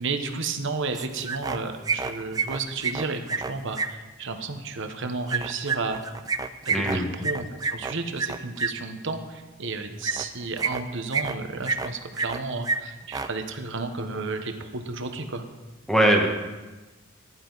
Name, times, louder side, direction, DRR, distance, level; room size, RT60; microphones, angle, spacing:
voice 1, 0.0-6.1 6.6-15.4, right 3 dB, 60° right, 6 dB, 1.2 m, -32 dB
sound 1, 0.9-1.6 1.8-3.9 5.3-8.7 10.0-10.2 10.6-11.3 11.6-12.4 12.6-12.8 13.0-13.3, right 4 dB, 20° right, 0.4 m, -28 dB
voice 2, 6.7-7.1 15.9-16.3, right 1 dB, ahead, 0 dB, 1.7 m, -20 dB
15.0 x 11.0 x 4.1 m, 1.2 s
head